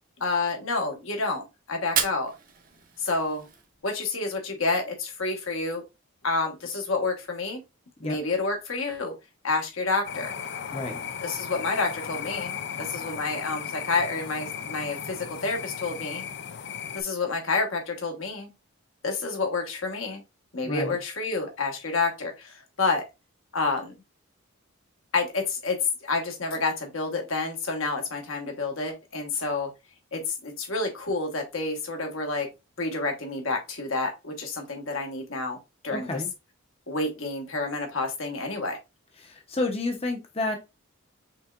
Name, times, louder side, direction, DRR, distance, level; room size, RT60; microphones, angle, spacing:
voice 1, 0.2-2.3 3.0-3.4 3.8-5.8 6.2-7.6 8.0-9.1 9.4-10.3 11.2-16.2 16.9-18.5 19.0-20.2 20.5-23.0 23.5-23.9 25.1-29.7 30.1-32.5 32.8-35.6 35.8-36.2 36.9-38.8, left 3 dB, 70° left, 3 dB, 1.4 m, -29 dB
Fire, 1.8-3.8, right 7 dB, 40° right, 0.8 m, -32 dB
sound 1, 10.0-17.0, left 7 dB, 55° left, 0.5 m, -36 dB
voice 2, 20.6-21.0 35.9-36.3 39.2-40.6, left 2 dB, 25° left, 3 dB, 0.8 m, -30 dB
5.5 x 3.5 x 2.4 m, 0.24 s
head